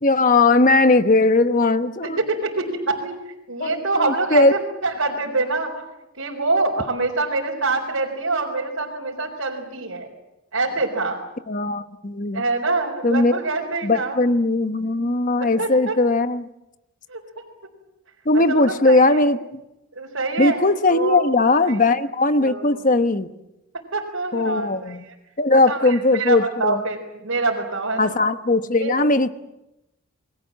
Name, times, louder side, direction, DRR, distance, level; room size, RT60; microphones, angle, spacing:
voice 1, 0.0-2.2 3.6-4.5 11.5-12.4 13.0-13.3 13.8-16.5 18.2-19.6 20.4-23.3 24.3-25.0 25.4-26.8 28.0-29.3, left 2 dB, 35° left, 10 dB, 1.1 m, -19 dB
voice 2, 2.0-5.8 6.2-10.1 10.5-11.2 12.3-14.2 15.6-16.0 17.1-17.2 18.3-19.2 19.9-21.4 21.6-21.8 22.4-22.9 23.9-25.1 25.5-28.1 28.8-28.9, right 3 dB, 70° right, -3 dB, 4.3 m, -25 dB
29.0 x 22.0 x 7.5 m, 0.94 s
head